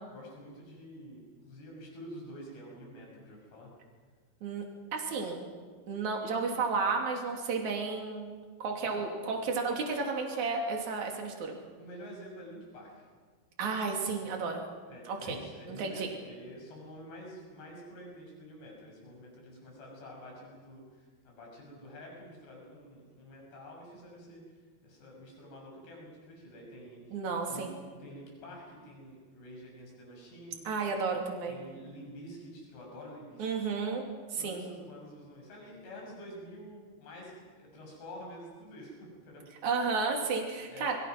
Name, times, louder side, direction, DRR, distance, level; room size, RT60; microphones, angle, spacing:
voice 1, 0.1-3.7 8.8-9.1 11.8-13.1 14.9-27.2 27.5-27.7 28.0-30.6 31.5-33.7 34.4-39.0 39.2-39.4 40.7-40.9, equal, 85° left, -1 dB, 8.8 m, -48 dB
voice 2, 4.9-5.4 5.9-8.3 8.6-11.6 13.6-14.6 15.1-15.4 15.7-16.1 27.1-27.7 30.6-31.6 33.4-34.0 34.3-34.7 39.6-41.0, right 4 dB, 50° right, 1 dB, 4.1 m, -32 dB
28.5 x 23.0 x 6.1 m, 1.5 s
omnidirectional pair, 4.7 m